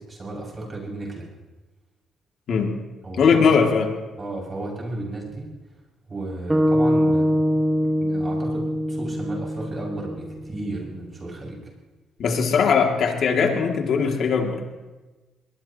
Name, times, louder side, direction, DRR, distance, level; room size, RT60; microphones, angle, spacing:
voice 1, 0.1-1.3 3.0-3.6 4.2-5.5 6.1-7.6 8.0-11.6, right 2 dB, 30° right, -3 dB, 6.4 m, -33 dB
voice 2, 3.2-3.9 12.2-14.8, left 5 dB, 65° left, 2 dB, 2.5 m, -20 dB
sound 1, 6.5-10.8, equal, 10° right, 1.4 m, -23 dB
22.5 x 20.0 x 3.0 m, 1.2 s
cardioid pair, 90°, 0 cm